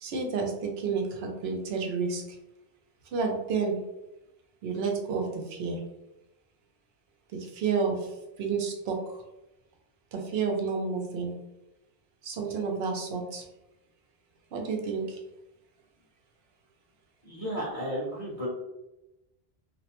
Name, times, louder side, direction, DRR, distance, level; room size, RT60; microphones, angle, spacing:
voice 1, 0.0-2.4 3.1-3.8 4.6-5.8 7.3-9.2 10.1-11.3 12.2-13.4 14.5-15.2, right 5 dB, 80° right, 1 dB, 0.8 m, -30 dB
voice 2, 17.2-18.5, equal, 35° left, -6 dB, 0.8 m, -33 dB
2.4 x 2.0 x 2.9 m, 0.93 s
omnidirectional pair, 1.1 m